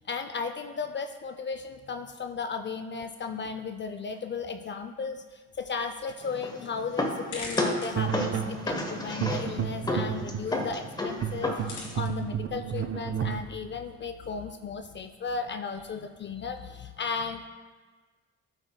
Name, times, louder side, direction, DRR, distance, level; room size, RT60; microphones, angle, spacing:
voice 1, 0.0-17.5, left 5 dB, 40° left, 7 dB, 0.5 m, -35 dB
sound 1, 5.5-16.7, left 3 dB, 75° left, 2.7 m, -49 dB
sound 2, 6.2-12.0, left 1 dB, 15° left, 1.0 m, -33 dB
sound 3, 8.0-13.4, right 8 dB, 45° right, 0.5 m, -32 dB
12.0 x 7.9 x 2.2 m, 1.4 s
cardioid pair, 90°, 30 cm